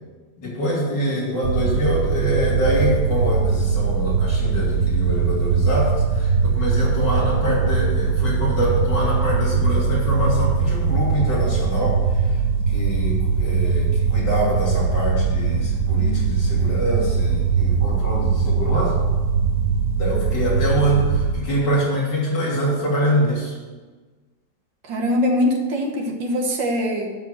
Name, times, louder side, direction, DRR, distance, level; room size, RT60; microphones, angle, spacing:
voice 1, 0.4-12.0 12.7-18.9 20.0-23.5, equal, 70° left, -6 dB, 3.8 m, -24 dB
sound 1, 1.4-21.3, right 5 dB, 55° right, 1.3 m, -21 dB
voice 2, 24.8-27.1, left 1 dB, 85° right, 2 dB, 2.1 m, -22 dB
11.5 x 4.6 x 7.8 m, 1.4 s
omnidirectional pair, 2.0 m